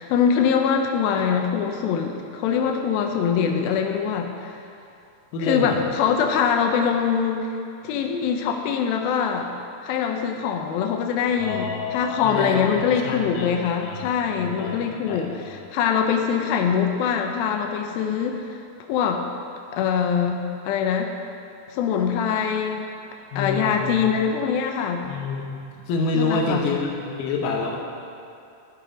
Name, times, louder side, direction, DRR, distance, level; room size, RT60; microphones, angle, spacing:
voice 1, 0.0-4.5 5.4-7.5 7.8-9.5 9.8-18.6 18.9-19.2 19.7-21.1 21.7-22.9 23.4-25.1 26.2-26.6, left 7 dB, 90° left, 4 dB, 2.5 m, -23 dB
voice 2, 5.3-5.8 11.4-13.5 13.8-15.6 23.3-24.1 25.0-27.8, left 3 dB, 70° left, 0 dB, 2.3 m, -28 dB
12.5 x 4.9 x 5.0 m, 2.7 s
omnidirectional pair, 4.1 m